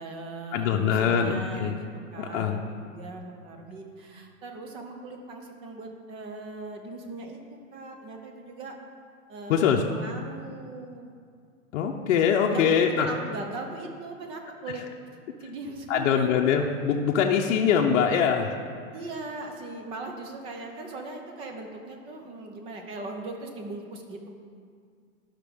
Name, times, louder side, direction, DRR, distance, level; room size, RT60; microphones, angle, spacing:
voice 1, 0.0-7.4 7.7-8.8 9.3-11.1 12.0-14.8 15.4-16.7 18.9-24.4, right 3 dB, 15° right, 3 dB, 0.4 m, -39 dB
voice 2, 0.5-1.8 2.2-2.6 9.5-9.8 11.7-13.1 15.9-18.6, left 7 dB, 60° left, 1 dB, 0.7 m, -23 dB
11.0 x 5.8 x 3.5 m, 2.1 s
hypercardioid pair, 145°, 40 cm